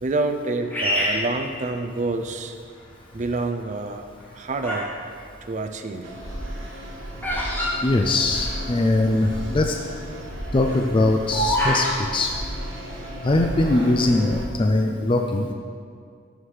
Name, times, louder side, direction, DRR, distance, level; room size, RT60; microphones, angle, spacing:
voice 1, 0.0-2.5 3.1-4.0 4.3-4.9 5.4-6.1, right 3 dB, 40° right, 6 dB, 0.5 m, -27 dB
Bird vocalization bird call bird song, 0.7-2.2 2.8-3.3 4.0-5.0 5.2-8.7 9.0-9.1 9.3-9.6 10.1-12.0, equal, 10° left, 2.0 m, -26 dB
sound 1, 6.0-14.5, equal, 75° right, 1.4 m, -34 dB
voice 2, 7.8-9.8 10.5-12.4 13.2-15.5, left 2 dB, 25° left, 3 dB, 0.4 m, -21 dB
13.0 x 6.3 x 3.3 m, 2.2 s
head